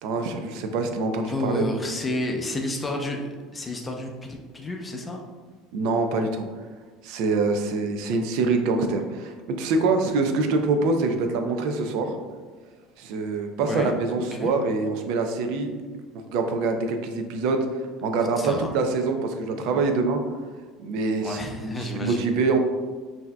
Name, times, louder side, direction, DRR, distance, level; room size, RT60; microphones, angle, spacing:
voice 1, 0.0-1.6 5.7-6.5 7.0-12.2 13.0-15.7 16.3-17.6 18.0-20.2 20.8-22.6, right 3 dB, 70° right, 5 dB, 0.5 m, -25 dB
voice 2, 1.3-5.2 13.6-13.9 14.3-14.5 18.4-18.7 21.2-22.3, left 1 dB, 20° left, 1 dB, 0.6 m, -30 dB
5.5 x 2.7 x 2.2 m, 1.5 s
supercardioid pair, 100°, 0 cm